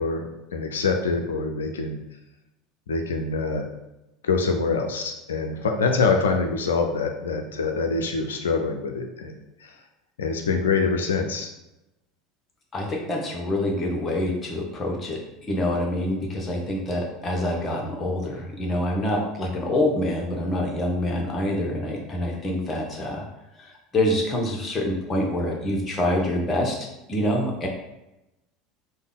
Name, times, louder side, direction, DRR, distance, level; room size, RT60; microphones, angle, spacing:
voice 1, 0.0-2.0 2.9-3.7 4.2-9.3 9.6-9.7 10.2-11.5, left 4 dB, 70° left, 4 dB, 0.4 m, -25 dB
voice 2, 12.7-23.2 23.6-26.8 27.1-27.7, left 1 dB, 25° left, 0 dB, 0.9 m, -26 dB
3.4 x 2.2 x 3.7 m, 0.92 s
figure-of-eight pair, 75°, 0 cm